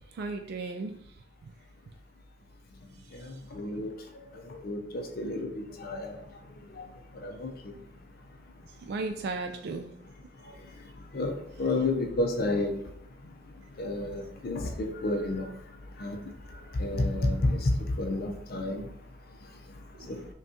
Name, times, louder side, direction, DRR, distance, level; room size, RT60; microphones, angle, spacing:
voice 1, 0.1-1.0 1.4-1.5 8.9-9.9 20.0-20.1, right 3 dB, 55° right, 5 dB, 0.3 m, -35 dB
voice 2, 3.5-3.9 4.6-6.2 6.8-6.9 7.2-7.5 11.1-12.8 13.8-15.5 16.0-16.2 16.8-18.8 20.1-20.2, left 2 dB, 55° left, 4 dB, 0.5 m, -30 dB
5.3 x 2.3 x 2.8 m, 0.71 s
head